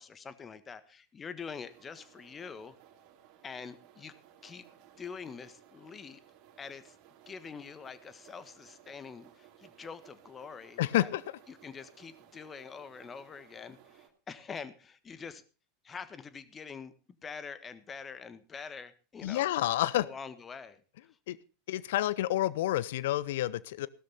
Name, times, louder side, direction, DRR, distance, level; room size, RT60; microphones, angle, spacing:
voice 1, 0.0-2.8 3.4-4.1 4.4-4.6 5.0-6.2 6.6-7.0 7.3-11.1 11.5-15.4 15.8-16.9 17.2-19.5 20.0-21.2, left 6 dB, 25° left, 14 dB, 1.5 m, -45 dB
sound 1, 1.4-14.1, right 10 dB, 45° right, 2.6 m, -59 dB
voice 2, 10.8-11.2 19.2-20.1 21.3-21.4 21.7-23.9, left 14 dB, 65° left, 19 dB, 0.7 m, -29 dB
16.5 x 12.5 x 4.2 m, 0.35 s
figure-of-eight pair, 85°, 0 cm